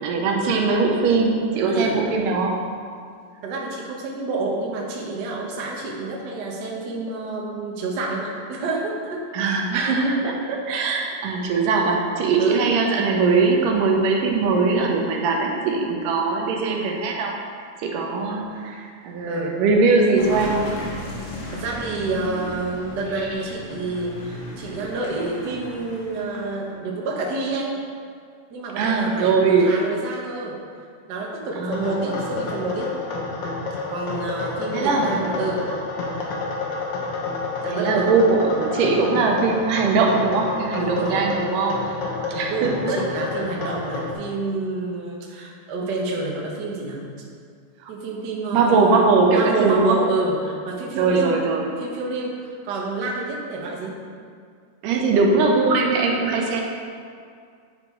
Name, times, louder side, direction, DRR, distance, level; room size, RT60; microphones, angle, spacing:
voice 1, 0.0-2.6 9.3-17.4 17.8-20.7 23.2-23.3 28.8-29.8 31.6-32.1 34.7-35.2 37.7-41.9 42.3-43.0 43.4-43.5 47.8-47.9 48.5-50.0 51.0-51.7 54.8-56.6, right 4 dB, 85° right, 1 dB, 2.6 m, -21 dB
voice 2, 1.7-2.0 3.4-9.3 12.4-12.6 19.3-19.6 21.1-21.3 21.5-27.8 28.5-30.6 31.1-32.9 33.9-35.7 37.6-38.1 40.8-41.3 41.8-42.0 42.5-47.1 47.9-51.4 51.8-54.0, right 3 dB, 60° right, -2 dB, 1.1 m, -28 dB
Car passing by / Engine, 20.2-26.7, left 1 dB, 50° left, 2.2 m, -35 dB
sound 1, 31.7-44.1, left 3 dB, 70° left, 1.0 m, -29 dB
9.7 x 5.7 x 4.6 m, 2.2 s
omnidirectional pair, 3.7 m